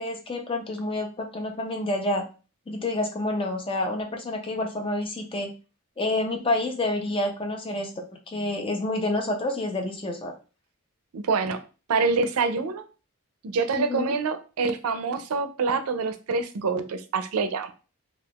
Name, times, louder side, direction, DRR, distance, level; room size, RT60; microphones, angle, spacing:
voice 1, 0.0-2.2 2.7-5.5 6.0-10.3 13.7-14.1, left 2 dB, 25° left, 3 dB, 0.4 m, -28 dB
voice 2, 11.1-11.6 11.9-12.8 13.4-17.7, right 4 dB, 80° right, 10 dB, 0.4 m, -26 dB
2.4 x 2.3 x 3.4 m, 0.33 s
head